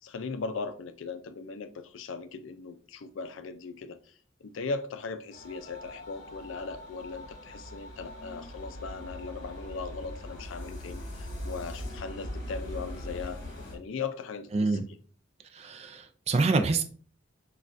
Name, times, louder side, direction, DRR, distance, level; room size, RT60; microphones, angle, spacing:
voice 1, 0.0-4.0 4.4-13.4 13.7-14.9, left 4 dB, 75° left, 0.4 m, -38 dB
sound 1, 5.3-13.8, left 1 dB, 45° left, 1.3 m, -41 dB
voice 2, 14.5-14.8 15.5-16.8, right 3 dB, 30° right, 0.3 m, -26 dB
6.2 x 2.3 x 2.5 m
head